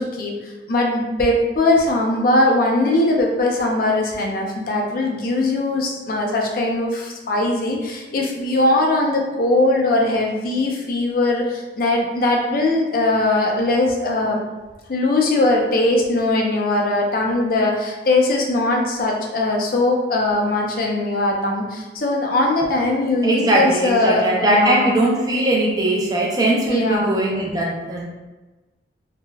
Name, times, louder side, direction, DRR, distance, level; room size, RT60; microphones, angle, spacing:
voice 1, 0.0-14.4 14.9-24.9 26.7-27.2, left 2 dB, 50° left, 0 dB, 0.4 m, -20 dB
voice 2, 23.2-28.0, right 1 dB, 20° right, -3 dB, 0.4 m, -19 dB
3.2 x 2.1 x 2.2 m, 1.2 s
head